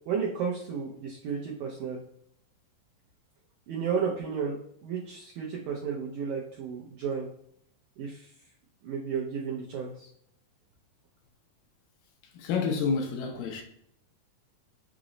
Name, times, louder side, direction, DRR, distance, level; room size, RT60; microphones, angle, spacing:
voice 1, 0.1-2.0 3.7-7.3 8.0-8.3 8.8-10.1, right 6 dB, 85° right, 1.7 m, -33 dB
voice 2, 12.2-13.6, left 5 dB, 80° left, 2.2 m, -29 dB
6.0 x 2.0 x 3.7 m
omnidirectional pair, 4.2 m